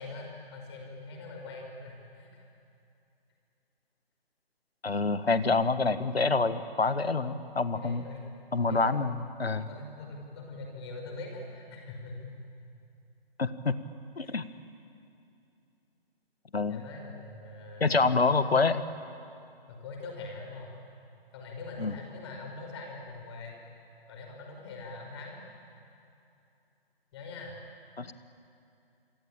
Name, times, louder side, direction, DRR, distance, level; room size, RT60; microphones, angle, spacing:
voice 1, 0.0-2.5 7.7-8.3 8.6-8.9 9.6-12.2 14.2-14.4 16.7-18.1 19.7-20.7 21.3-23.6 24.1-25.4 27.1-27.6, left 3 dB, 25° left, 1 dB, 5.3 m, -43 dB
voice 2, 4.8-8.0 8.5-9.7 13.4-13.8 14.2-14.5 16.5-16.8 17.8-18.8 21.8-21.9 28.0-28.1, left 4 dB, 80° left, 12 dB, 1.6 m, -27 dB
28.0 x 23.5 x 8.8 m, 2.7 s
figure-of-eight pair, 150°, 30 cm